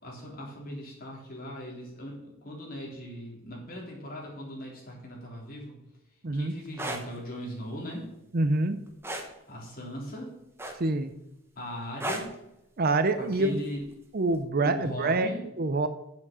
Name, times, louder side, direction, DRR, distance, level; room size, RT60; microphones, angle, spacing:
voice 1, 0.0-5.8 6.3-8.1 9.2-10.4 11.6-12.3 13.2-13.8 14.6-15.4, equal, 40° left, -2 dB, 3.6 m, -39 dB
Scratching upholstery, 6.7-7.0 9.0-9.3 10.6-11.0 12.0-12.3 13.8-13.9, right 1 dB, 10° right, 1.1 m, -33 dB
voice 2, 8.3-8.8 10.8-11.1 12.8-13.6 14.1-15.3 15.6-15.9, right 2 dB, 45° right, 10 dB, 0.6 m, -26 dB
8.1 x 7.4 x 6.8 m, 0.86 s
head